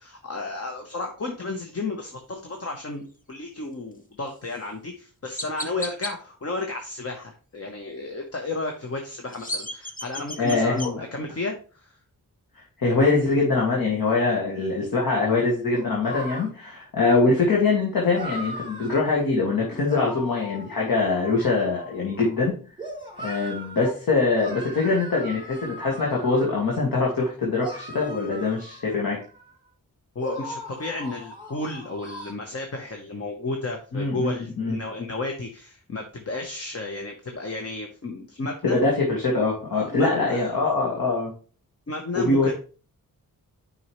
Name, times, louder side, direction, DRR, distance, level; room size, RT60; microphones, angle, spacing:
voice 1, 0.0-3.0 3.3-12.0 30.1-38.8 39.7-40.6 41.9-42.5, left 2 dB, 45° left, 3 dB, 1.0 m, -32 dB
Chirp tweet, 4.5-4.6 5.4-6.1 9.1-10.9, left 1 dB, 25° left, 1.0 m, -34 dB
voice 2, 10.4-11.0 12.8-22.5 23.2-29.2 33.9-34.8 38.6-41.3 42.1-42.5, left 3 dB, 90° left, -3 dB, 2.0 m, -23 dB
sound 1, 15.7-16.5 18.1-19.0 19.8-22.4 22.8-23.9 24.3-26.8 27.6-29.5 30.2-32.3, right 1 dB, 15° right, 1.9 m, -39 dB
9.2 x 5.4 x 3.1 m, 0.37 s
wide cardioid pair, 120°, 34 cm